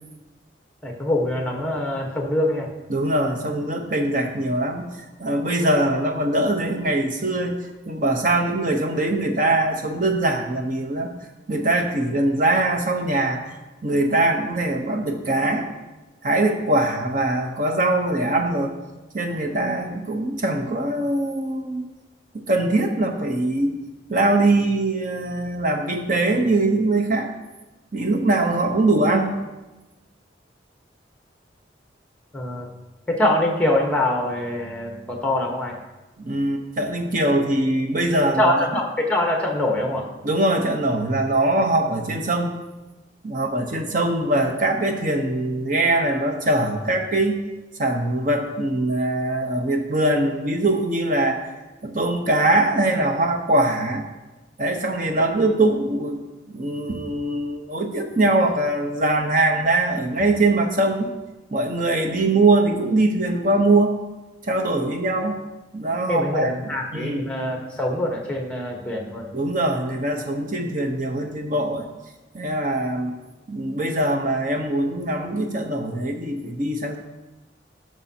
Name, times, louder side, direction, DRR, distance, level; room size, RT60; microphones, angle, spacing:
voice 1, 0.8-2.7 32.3-32.7 33.1-35.8 38.4-40.1 66.1-69.4, left 1 dB, 5° left, 1 dB, 1.1 m, -24 dB
voice 2, 2.9-4.9 5.2-7.6 7.9-11.1 11.5-13.4 13.8-15.7 16.2-18.7 19.1-21.8 22.3-23.8 24.1-27.3 27.9-29.4 36.2-38.7 40.2-42.5 43.2-47.4 47.8-51.5 51.8-54.0 54.6-61.1 61.5-64.0 64.4-65.4 65.7-66.5 66.9-67.2 69.3-71.9 72.3-73.2 73.5-77.0, right 2 dB, 45° right, 3 dB, 0.9 m, -22 dB
14.0 x 6.2 x 2.8 m, 1.1 s
head